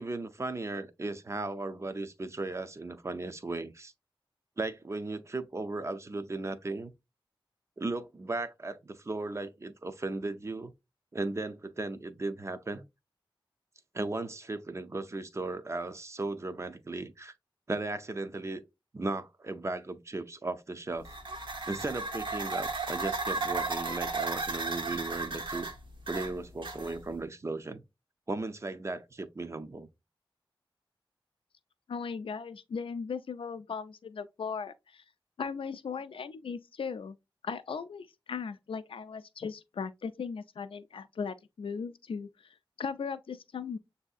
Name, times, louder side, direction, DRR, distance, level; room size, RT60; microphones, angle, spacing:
voice 1, 0.0-3.9 4.6-6.9 7.8-10.7 11.1-12.9 13.9-17.3 17.7-18.6 18.9-21.1 21.7-25.7 26.1-27.8 28.3-29.9, right 2 dB, 30° right, 0.5 m, -36 dB
sound 1, 21.0-27.2, right 3 dB, 65° right, 0.7 m, -35 dB
voice 2, 31.9-35.0 35.4-37.2 37.4-43.8, left 5 dB, 80° left, 0.4 m, -38 dB
6.9 x 2.7 x 2.4 m
wide cardioid pair, 80°, 9 cm